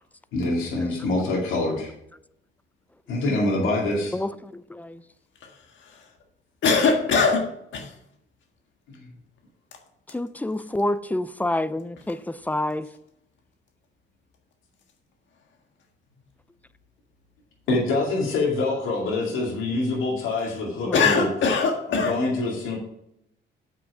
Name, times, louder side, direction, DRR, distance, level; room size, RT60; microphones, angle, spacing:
voice 1, 0.3-1.9 3.1-4.2 8.9-9.0 17.7-21.3 21.9-22.8, left 2 dB, 90° left, 2.5 m, -25 dB
voice 2, 4.1-5.0 10.1-12.9 20.8-21.1, left 1 dB, 10° left, 0.4 m, -28 dB
voice 3, 6.6-7.9 20.9-22.2, left 5 dB, 70° left, 1.6 m, -22 dB
7.6 x 6.1 x 4.8 m
cardioid pair, 90°, 20 cm